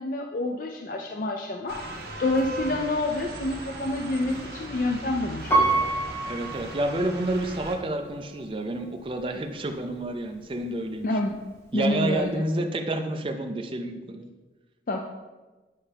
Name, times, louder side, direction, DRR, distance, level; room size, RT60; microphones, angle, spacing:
voice 1, 0.0-1.8 2.2-5.9 11.0-11.4 11.7-12.4 14.9-15.0, left 2 dB, 50° left, 2 dB, 0.5 m, -28 dB
sound 1, 1.7-7.8, right 1 dB, 65° right, 1.2 m, -38 dB
Piano, 5.5-7.5 8.0-8.1, right 2 dB, 15° left, 1.5 m, -26 dB
voice 2, 6.3-11.1 11.7-14.3, right 1 dB, 30° right, 4 dB, 0.5 m, -29 dB
9.1 x 5.5 x 3.5 m, 1.2 s
head